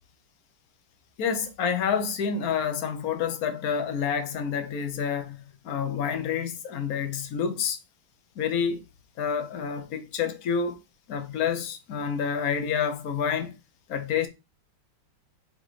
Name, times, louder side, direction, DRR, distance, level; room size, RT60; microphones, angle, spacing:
voice 1, 1.2-7.8 8.4-8.8 9.2-10.8 11.1-13.6 13.9-14.3, left 7 dB, 50° left, 1.3 m, -28 dB
5.0 x 4.0 x 5.0 m
omnidirectional pair, 2.3 m